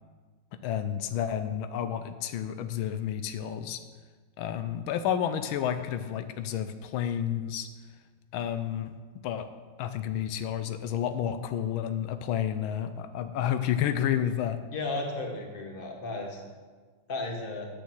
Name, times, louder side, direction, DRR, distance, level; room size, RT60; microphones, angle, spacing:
voice 1, 0.5-3.8 4.4-7.7 8.3-8.9 9.2-9.5 9.8-14.6, left 9 dB, 85° left, 10 dB, 1.5 m, -30 dB
voice 2, 14.7-16.4 17.1-17.7, left 2 dB, 30° left, 1 dB, 1.6 m, -34 dB
9.5 x 7.0 x 7.5 m, 1.4 s
omnidirectional pair, 2.2 m